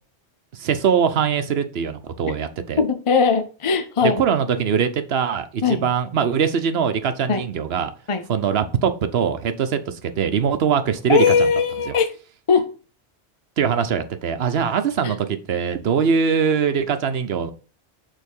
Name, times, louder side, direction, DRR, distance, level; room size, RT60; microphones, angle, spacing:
voice 1, 0.5-2.8 4.2-7.9 8.3-11.5 11.9-12.0 13.6-17.5, right 7 dB, 70° right, 1.0 m, -22 dB
voice 2, 2.8-4.2 5.6-5.9 7.3-7.5 8.1-8.2 11.1-12.2 12.5-12.7 15.0-15.1, left 5 dB, 35° left, 0.6 m, -19 dB
6.5 x 3.6 x 5.3 m
omnidirectional pair, 1.1 m